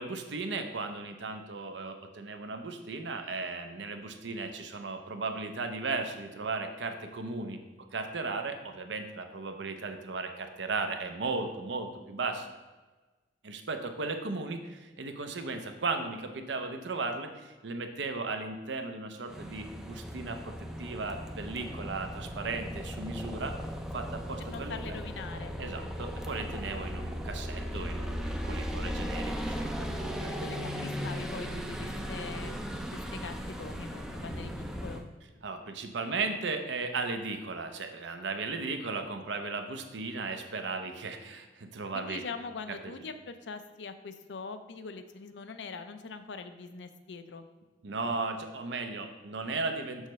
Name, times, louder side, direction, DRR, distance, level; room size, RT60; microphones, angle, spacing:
voice 1, 0.0-7.6 7.9-12.5 13.4-23.5 23.9-24.8 25.6-29.7 30.0-30.3 35.4-42.2 42.8-42.9 47.8-50.1, right 3 dB, 80° right, 6 dB, 0.7 m, -36 dB
sound 1, 19.3-35.0, equal, 5° right, 0.4 m, -37 dB
voice 2, 24.4-26.0 30.3-35.0 41.9-47.4, left 4 dB, 75° left, 9 dB, 0.5 m, -43 dB
6.4 x 6.4 x 3.1 m, 1.2 s
head